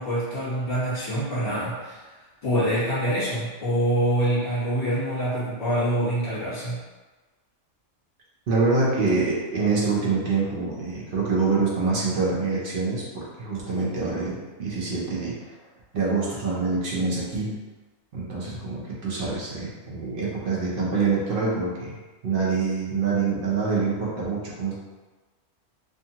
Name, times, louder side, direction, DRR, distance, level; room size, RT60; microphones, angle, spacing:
voice 1, 0.0-2.0 2.4-6.8, right 1 dB, 30° left, -11 dB, 1.3 m, -25 dB
voice 2, 8.5-15.3 15.9-17.5 18.1-21.9 22.2-24.8, right 4 dB, 55° right, -5 dB, 0.7 m, -25 dB
2.6 x 2.4 x 2.7 m, 1.3 s
omnidirectional pair, 1.3 m